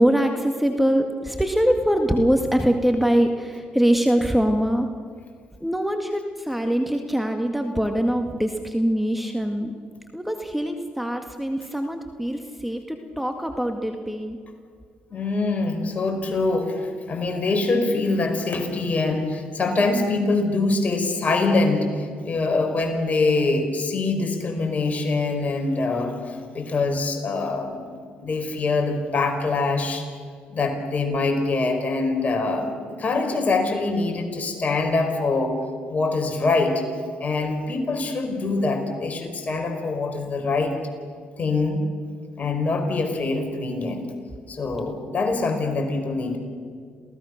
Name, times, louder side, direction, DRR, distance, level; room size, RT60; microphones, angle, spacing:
voice 1, 0.0-4.9 5.6-9.7 10.1-14.4, equal, 5° right, 5 dB, 1.9 m, -23 dB
voice 2, 15.1-27.9 28.2-30.1 30.5-35.5 35.9-36.8 37.2-40.7 41.4-41.9 42.4-44.0 44.5-46.4, left 3 dB, 40° left, 4 dB, 5.4 m, -24 dB
28.0 x 17.5 x 6.6 m, 2.1 s
supercardioid pair, 65°, 4 cm